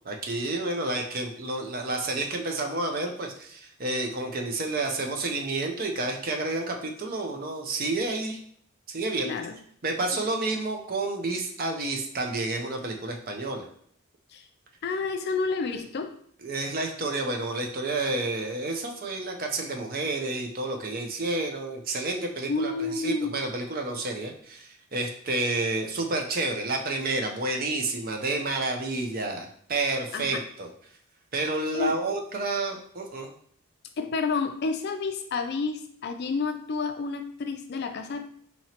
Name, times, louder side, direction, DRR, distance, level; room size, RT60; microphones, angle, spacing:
voice 1, 0.1-8.4 8.9-9.3 9.8-13.6 16.4-30.7 31.3-33.3, right 2 dB, 40° right, 3 dB, 0.5 m, -30 dB
voice 2, 9.2-9.6 10.2-10.3 14.3-14.5 14.8-16.1 22.5-23.4 30.1-30.4 31.7-31.9 34.0-38.3, left 4 dB, 45° left, 7 dB, 0.4 m, -30 dB
4.4 x 2.9 x 2.8 m, 0.63 s
head